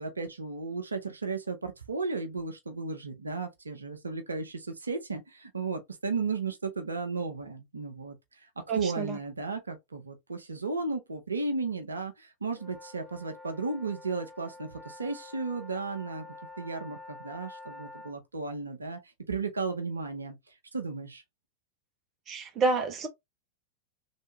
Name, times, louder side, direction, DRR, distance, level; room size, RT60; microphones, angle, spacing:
voice 1, 0.0-16.3 16.6-21.2, right 4 dB, 75° right, 0.7 m, -34 dB
voice 2, 8.7-9.2 22.3-23.1, right 4 dB, 30° right, 0.9 m, -29 dB
sound 1, 12.5-18.1, left 3 dB, ahead, 1.1 m, -48 dB
3.3 x 2.7 x 3.0 m
figure-of-eight pair, 90°, 0 cm